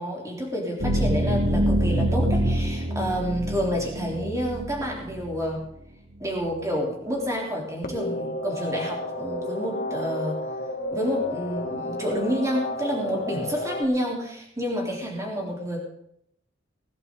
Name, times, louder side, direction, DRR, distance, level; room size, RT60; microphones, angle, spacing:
voice 1, 0.0-5.6 6.2-10.4 10.9-15.8, equal, 15° right, -2 dB, 3.9 m, -29 dB
sound 1, 0.8-5.6, right 1 dB, 75° right, 4.8 m, -25 dB
sound 2, 7.8-13.8, left 2 dB, 50° left, 2.0 m, -32 dB
20.5 x 11.0 x 4.0 m, 0.73 s
head